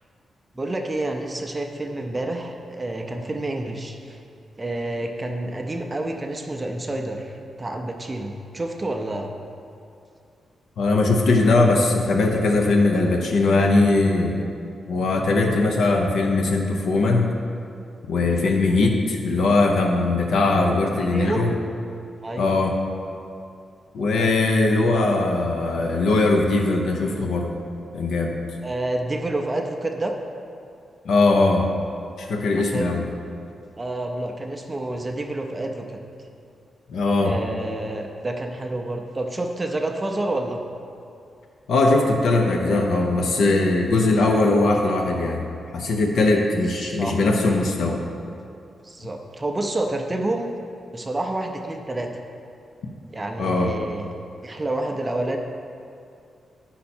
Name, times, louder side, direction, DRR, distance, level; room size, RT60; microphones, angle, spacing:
voice 1, 0.6-4.2 4.6-9.3 18.4-18.5 18.8-18.9 21.0-21.4 22.2-22.5 24.2-24.3 28.6-30.2 32.7-33.0 33.7-36.0 37.2-40.6 46.7-47.2 48.8-50.5 50.9-52.1 53.1-54.1 54.4-55.4, right 2 dB, 15° right, 3 dB, 0.4 m, -29 dB
voice 2, 10.8-14.4 14.9-17.3 18.1-21.5 22.4-22.8 23.9-27.5 27.9-28.4 31.0-31.7 32.2-33.1 36.9-37.4 41.7-45.4 45.7-48.0 53.4-53.7, left 2 dB, 80° left, 1 dB, 0.7 m, -20 dB
9.6 x 5.6 x 4.3 m, 2.5 s
wide cardioid pair, 170°, 0 cm